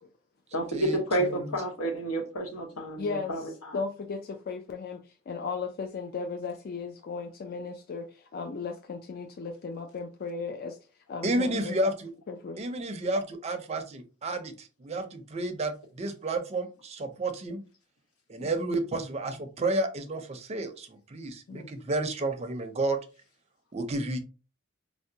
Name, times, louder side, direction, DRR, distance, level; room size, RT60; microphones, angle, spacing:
voice 1, 0.5-3.8, right 1 dB, 90° left, 1.0 m, -30 dB
voice 2, 3.0-3.3 3.7-10.8 11.1-11.8 12.3-12.6 18.4-18.5 21.5-21.7, left 4 dB, 45° left, 0.3 m, -36 dB
voice 3, 11.2-12.1 12.6-17.6 18.3-23.0 23.7-24.2, right 2 dB, 30° right, 0.5 m, -31 dB
4.4 x 2.1 x 2.7 m
head